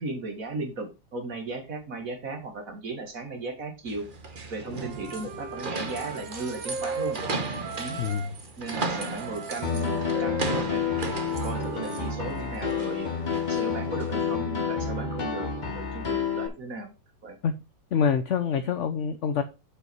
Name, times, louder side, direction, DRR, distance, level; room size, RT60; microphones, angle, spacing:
voice 1, 0.0-4.1 4.5-7.2 7.8-8.0 8.6-10.8 11.4-13.1 13.5-16.9 17.2-17.4, right 3 dB, 50° right, 4 dB, 2.3 m, -36 dB
sound 1, 3.9-14.3, right 3 dB, 35° right, 1.2 m, -36 dB
Wind instrument woodwind instrument, 4.7-8.4 8.6-12.6, right 4 dB, 80° right, 2.0 m, -38 dB
voice 2, 8.0-8.3 17.4-17.6 17.9-19.4, left 7 dB, 55° left, 9 dB, 0.9 m, -26 dB
Piano, 9.6-16.5, left 6 dB, 30° left, 1.1 m, -29 dB
8.8 x 5.2 x 4.6 m, 0.28 s
omnidirectional pair, 1.9 m